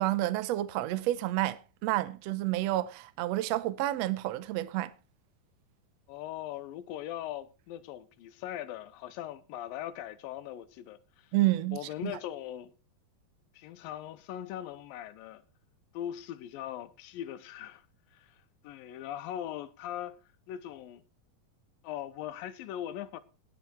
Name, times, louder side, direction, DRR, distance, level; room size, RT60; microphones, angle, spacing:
voice 1, 0.0-4.9 11.3-12.2, right 16 dB, 85° right, 1.4 m, -30 dB
voice 2, 6.1-11.3 11.7-12.7 13.5-15.4 15.9-17.8 18.1-18.4 18.6-20.2 20.5-21.0 21.8-23.2, left 11 dB, 85° left, 2.6 m, -40 dB
19.0 x 7.2 x 4.5 m
omnidirectional pair, 4.1 m